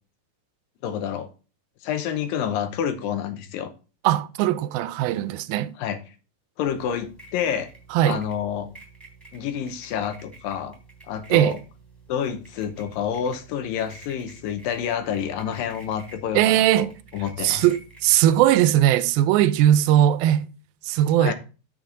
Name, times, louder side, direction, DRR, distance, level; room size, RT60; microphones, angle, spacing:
voice 1, 0.8-1.3 1.8-3.7 5.8-6.0 6.6-7.7 8.0-8.7 9.3-10.8 11.1-11.6 12.1-16.9 17.1-17.7 21.2-21.3, left 8 dB, 80° left, 2.5 m, -28 dB
voice 2, 4.0-5.7 7.9-8.2 11.3-11.6 16.3-16.9 17.4-20.5 20.8-21.3, right 12 dB, 90° right, 2.4 m, -19 dB
sound 1, 6.6-18.5, right 3 dB, ahead, 2.9 m, -49 dB
8.9 x 6.3 x 3.8 m
omnidirectional pair, 4.1 m